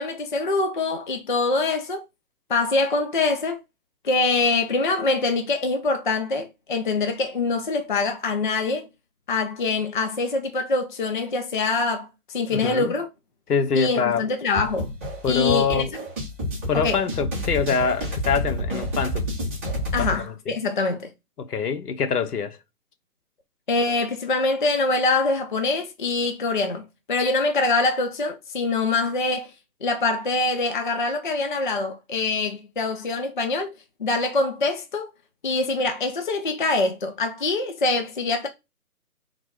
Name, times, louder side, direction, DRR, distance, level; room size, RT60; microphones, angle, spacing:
voice 1, 0.0-2.0 2.5-3.6 4.0-8.9 9.3-13.1 13.8-14.9 15.3-15.9 16.7-17.0 19.9-21.1 23.7-29.5 29.8-33.7 34.0-35.1 35.4-38.5, left 3 dB, 35° left, 0.4 m, -24 dB
voice 2, 12.5-12.9 13.5-14.3 15.2-15.9 16.7-19.2 20.0-20.5 21.4-22.6, left 6 dB, 75° left, 0.9 m, -25 dB
sound 1, 14.5-20.2, equal, 10° right, 0.6 m, -29 dB
3.9 x 2.3 x 4.6 m
figure-of-eight pair, 145°, 47 cm